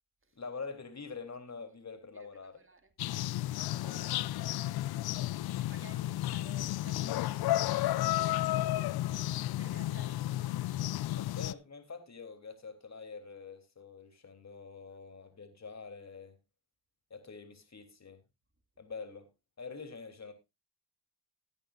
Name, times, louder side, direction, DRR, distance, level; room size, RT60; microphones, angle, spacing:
voice 1, 0.4-2.6 5.4-5.6 11.1-16.4 17.1-18.2 18.8-19.3 19.6-20.3, left 4 dB, 35° left, 3.4 m, -45 dB
voice 2, 2.1-2.9 3.4-4.7 5.6-10.6, right 3 dB, 30° right, 2.4 m, -56 dB
sound 1, 3.0-11.5, left 15 dB, 55° left, 0.6 m, -32 dB
18.0 x 8.9 x 2.6 m
hypercardioid pair, 45°, 44 cm